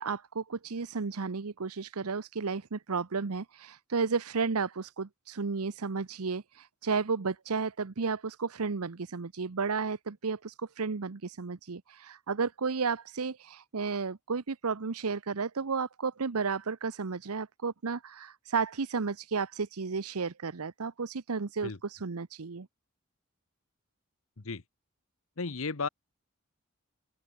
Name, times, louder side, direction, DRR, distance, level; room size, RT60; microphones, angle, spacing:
voice 1, 0.0-22.7, right 5 dB, 85° right, 0.8 m, -33 dB
voice 2, 25.4-25.9, left 4 dB, 70° left, 1.1 m, -33 dB
open air
head